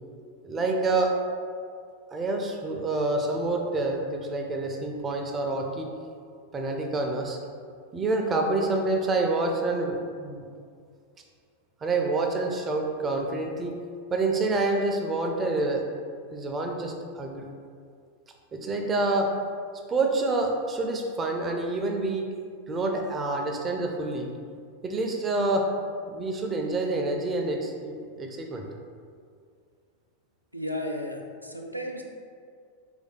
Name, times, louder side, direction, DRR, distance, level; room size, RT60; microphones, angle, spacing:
voice 1, 0.4-1.2 2.1-5.9 6.5-7.4 7.9-10.4 11.8-13.7 14.1-15.9 16.3-17.5 18.5-19.3 19.9-22.3 22.7-24.3 24.8-25.7 26.1-28.7, right 2 dB, 20° right, 2 dB, 0.4 m, -27 dB
voice 2, 30.5-32.0, left 1 dB, 90° right, 1 dB, 0.3 m, -34 dB
3.2 x 2.5 x 3.7 m, 2.2 s
figure-of-eight pair, 90°, 0 cm